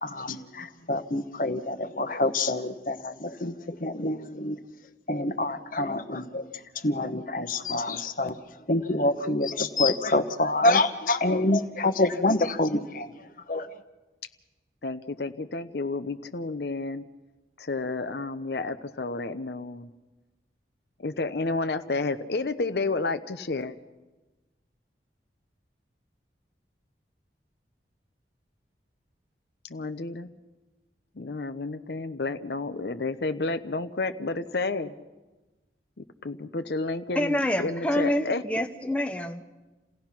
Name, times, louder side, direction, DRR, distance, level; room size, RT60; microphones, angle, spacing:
voice 1, 0.0-4.6 5.1-6.5 6.8-8.4 8.7-13.1 13.5-13.7, left 2 dB, 50° left, 10 dB, 1.1 m, -26 dB
voice 2, 14.8-17.0 17.6-19.9 21.0-23.8 29.7-30.3 31.1-34.9 36.0-38.4, left 3 dB, 65° left, 10 dB, 0.8 m, -31 dB
voice 3, 37.2-39.4, left 1 dB, 5° left, 6 dB, 0.8 m, -27 dB
29.0 x 17.0 x 5.9 m, 1.2 s
head